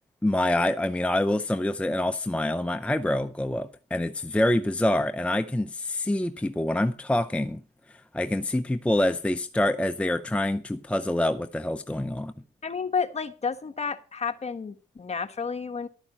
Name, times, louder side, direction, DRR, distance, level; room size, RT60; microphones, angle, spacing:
voice 1, 0.2-7.6 8.1-12.3, left 1 dB, 5° left, 0.6 m, -26 dB
voice 2, 12.6-15.9, left 5 dB, 35° left, 1.5 m, -31 dB
12.5 x 8.9 x 5.6 m
cardioid pair, 90°, 20 cm